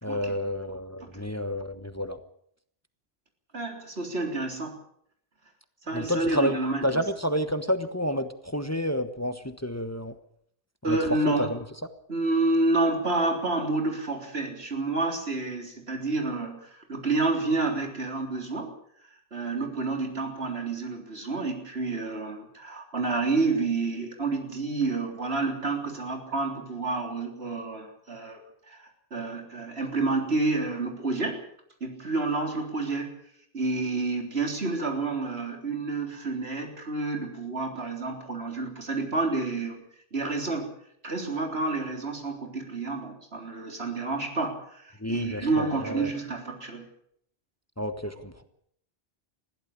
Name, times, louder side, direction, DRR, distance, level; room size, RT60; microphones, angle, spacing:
voice 1, 0.0-2.2 5.9-6.6 6.8-10.1 10.9-11.6 45.0-46.1 47.8-48.4, equal, 15° left, 9 dB, 1.1 m, -30 dB
voice 2, 3.5-4.8 5.9-7.0 10.8-11.5 12.1-18.7 19.3-28.4 28.7-31.4 31.8-33.1 33.5-39.8 40.1-40.7 41.0-46.9, right 3 dB, 85° right, 3 dB, 4.0 m, -29 dB
21.0 x 15.5 x 8.5 m, 0.69 s
omnidirectional pair, 1.0 m